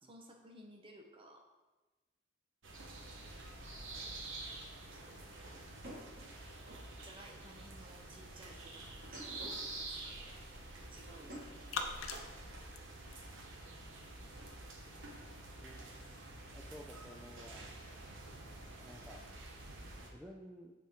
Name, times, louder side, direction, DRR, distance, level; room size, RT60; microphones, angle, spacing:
voice 1, 0.0-1.5 4.9-5.3 7.0-10.3 10.6-11.3, right 1 dB, 25° right, 2 dB, 0.9 m, -58 dB
sound 1, 2.6-20.1, right 2 dB, 70° right, 1.1 m, -49 dB
sound 2, 5.8-6.9 8.9-9.7 11.1-11.7, equal, 50° right, 1.5 m, -50 dB
sound 3, 7.9-13.4, left 4 dB, 85° left, 0.7 m, -48 dB
voice 2, 15.6-16.0 16.5-17.7 18.8-19.2 19.9-20.7, equal, 5° right, -2 dB, 0.4 m, -53 dB
8.7 x 4.3 x 3.6 m, 1.2 s
head